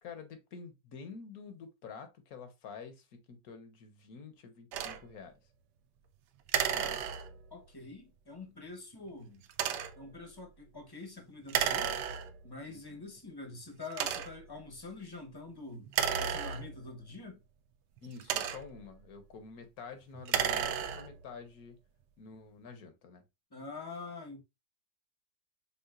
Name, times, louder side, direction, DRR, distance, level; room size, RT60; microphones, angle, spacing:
voice 1, 0.0-5.4 12.7-12.8 18.0-21.8 22.2-23.2, left 5 dB, 65° left, 1.3 m, -48 dB
sound 1, 4.7-5.0 6.5-7.5 9.5-10.0 11.5-12.5 13.2-13.3 13.9-14.5 15.9-17.0 18.0-18.9 20.1-21.2, right 9 dB, 90° right, 1.2 m, -33 dB
voice 2, 6.7-7.1 7.5-9.5 9.9-12.0 12.4-15.9 16.2-17.4 23.5-24.4, left 3 dB, 15° left, 0.8 m, -46 dB
5.7 x 3.6 x 2.4 m
omnidirectional pair, 1.8 m